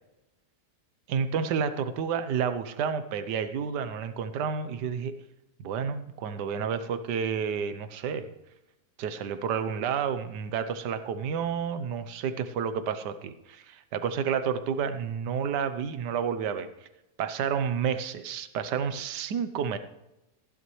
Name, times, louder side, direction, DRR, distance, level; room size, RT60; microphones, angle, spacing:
voice 1, 1.1-5.2 5.6-8.3 9.0-16.7 17.2-19.8, right 7 dB, 80° right, 11 dB, 1.4 m, -30 dB
15.5 x 11.0 x 3.2 m, 0.93 s
omnidirectional pair, 1.8 m